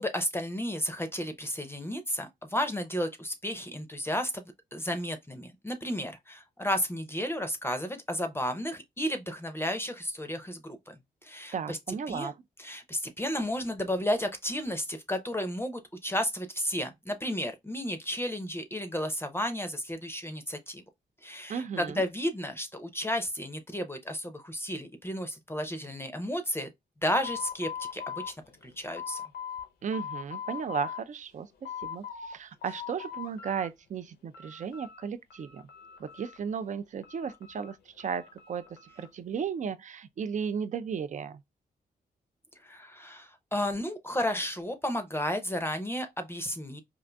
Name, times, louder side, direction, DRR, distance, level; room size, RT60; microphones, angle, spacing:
voice 1, 0.0-11.8 12.1-12.3 12.6-20.8 21.2-26.7 27.0-28.4 28.6-29.2 42.6-46.8, equal, 15° left, 0.6 m, -33 dB
voice 2, 11.5-12.3 21.5-22.1 29.8-35.6 36.0-38.6 39.0-41.4, right 6 dB, 50° right, 0.4 m, -35 dB
sound 1, 27.2-29.7 29.9-31.0 31.4-32.3 32.6-33.7 34.0-35.0 35.3-36.6 37.0-39.1, left 8 dB, 75° left, 0.6 m, -41 dB
3.8 x 2.5 x 2.2 m
cardioid pair, 65°, 17 cm